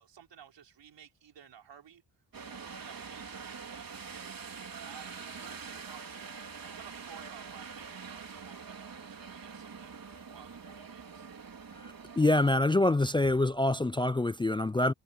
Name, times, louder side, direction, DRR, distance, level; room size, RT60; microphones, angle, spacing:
voice 1, 0.0-2.0 2.4-6.2 6.6-11.3, right 8 dB, 90° right, 4.9 m, -55 dB
sound 1, 2.3-12.5, right 5 dB, 55° right, 4.5 m, -45 dB
voice 2, 12.2-14.9, left 2 dB, 15° left, 0.3 m, -25 dB
cardioid pair, 80°, 41 cm